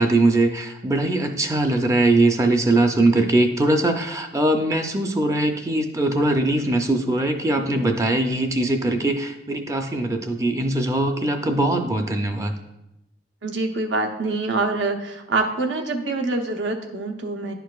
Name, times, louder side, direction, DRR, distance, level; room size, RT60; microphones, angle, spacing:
voice 1, 0.0-12.5, right 2 dB, 15° right, 5 dB, 0.4 m, -21 dB
voice 2, 13.4-17.5, right 3 dB, 85° right, 3 dB, 0.7 m, -25 dB
10.5 x 4.6 x 2.3 m, 0.88 s
head